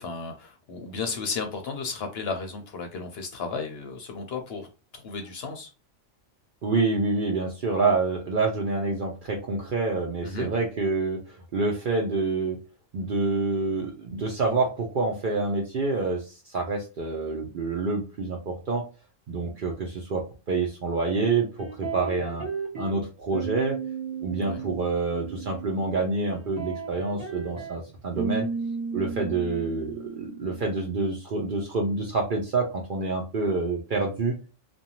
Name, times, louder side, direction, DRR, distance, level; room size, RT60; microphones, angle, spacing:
voice 1, 0.0-4.7 4.9-5.7 10.2-10.5 24.4-24.7, left 4 dB, 60° left, 5 dB, 0.7 m, -34 dB
voice 2, 6.6-11.2 11.5-12.6 12.9-18.8 19.3-22.5 22.8-23.8 24.2-28.5 28.9-34.4, right 3 dB, 55° right, 0 dB, 0.6 m, -27 dB
sound 1, 21.6-23.0 23.3-26.1 26.3-30.7, right 5 dB, 35° right, 1.1 m, -34 dB
2.5 x 2.2 x 2.8 m, 0.33 s
omnidirectional pair, 1.3 m